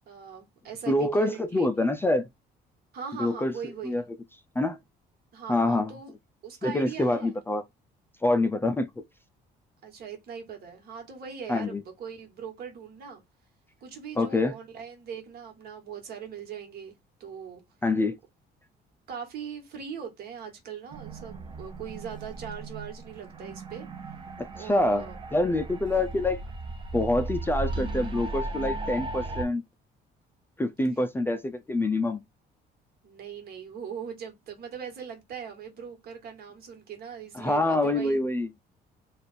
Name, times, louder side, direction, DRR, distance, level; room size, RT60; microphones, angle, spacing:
voice 1, 0.1-1.9 2.9-4.1 5.3-6.1 6.4-7.4 9.8-13.2 13.8-16.9 17.2-17.6 19.1-23.9 24.5-25.2 33.0-38.3, right 7 dB, 60° right, 1.6 m, -40 dB
voice 2, 0.9-2.3 3.2-3.5 3.8-4.0 4.6-4.8 5.5-5.9 6.6-7.6 8.2-8.9 11.5-11.8 14.2-14.5 17.8-18.2 24.6-25.1 25.3-26.4 26.9-29.6 30.6-32.2 37.3-38.5, left 2 dB, 10° left, 0.4 m, -26 dB
sound 1, 20.9-29.4, right 2 dB, 30° right, 0.7 m, -36 dB
3.4 x 2.4 x 4.1 m
cardioid pair, 135°, 18 cm